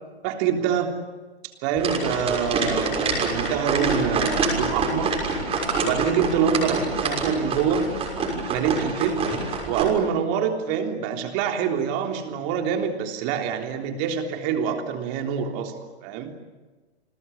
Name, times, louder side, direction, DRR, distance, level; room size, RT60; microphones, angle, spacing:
voice 1, 0.2-1.0 1.6-5.2 5.8-7.9 8.5-9.3 9.7-15.7 16.0-16.3, right 7 dB, 30° right, 4 dB, 3.5 m, -25 dB
sound 1, 1.8-9.8, right 3 dB, 15° right, 6.3 m, -26 dB
30.0 x 20.5 x 8.4 m, 1.3 s
hypercardioid pair, 135°, 33 cm